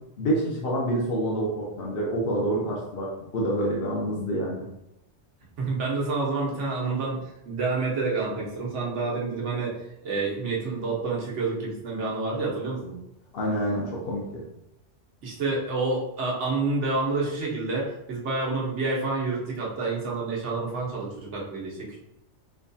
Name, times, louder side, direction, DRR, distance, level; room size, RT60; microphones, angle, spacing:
voice 1, 0.2-4.6 13.3-14.4, right 1 dB, 60° left, -3 dB, 0.8 m, -27 dB
voice 2, 5.6-9.8 10.0-13.0 15.2-22.0, right 3 dB, 90° right, -4 dB, 1.3 m, -28 dB
4.7 x 2.2 x 2.6 m, 0.85 s
omnidirectional pair, 1.2 m